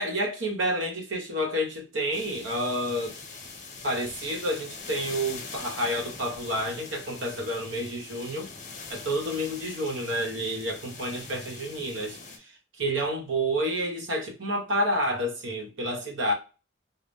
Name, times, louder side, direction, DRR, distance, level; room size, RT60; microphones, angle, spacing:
voice 1, 0.0-3.2 3.8-8.5 8.9-12.5 12.8-16.3, equal, 80° right, 0.9 m, -29 dB
sound 1, 2.1-12.4, left 4 dB, 40° left, 0.7 m, -43 dB
2.6 x 2.1 x 3.4 m
head